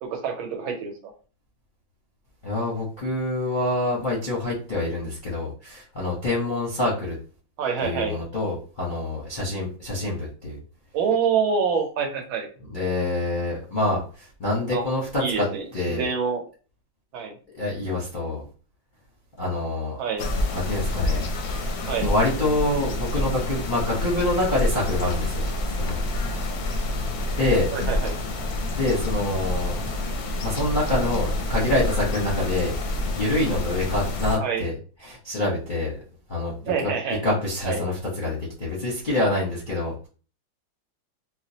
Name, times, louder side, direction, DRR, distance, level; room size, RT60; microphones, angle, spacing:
voice 1, 0.0-1.1 7.6-8.1 10.9-12.5 14.7-14.8 15.2-16.4 17.1-17.3 20.0-20.3 21.9-22.1 27.7-28.2 34.4-34.6 36.6-37.2 37.6-37.8, right 6 dB, 80° right, 3 dB, 1.6 m, -26 dB
voice 2, 2.4-7.2 7.8-10.6 12.7-15.5 15.7-16.1 17.5-18.4 19.4-20.0 20.5-21.3 21.5-21.7 22.0-26.0 27.4-27.7 28.7-29.8 30.4-32.8 33.1-34.7 35.0-35.9 36.3-36.5 37.2-40.1, left 2 dB, 40° left, -6 dB, 0.7 m, -26 dB
sound 1, 20.2-34.4, left 1 dB, 70° left, 0.9 m, -27 dB
4.6 x 2.1 x 2.7 m, 0.37 s
omnidirectional pair, 2.2 m